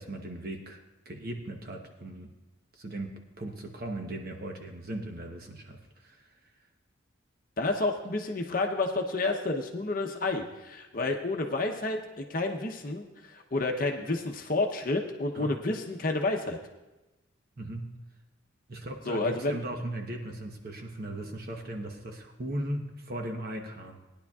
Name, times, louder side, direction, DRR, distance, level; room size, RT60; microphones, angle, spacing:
voice 1, 0.0-2.3 2.7-6.3 15.3-15.6 17.6-18.0 18.7-24.0, right 1 dB, 50° right, 3 dB, 1.0 m, -38 dB
voice 2, 7.6-16.6 19.1-19.6, left 2 dB, 45° left, 3 dB, 0.8 m, -30 dB
19.0 x 10.5 x 2.4 m, 1.0 s
head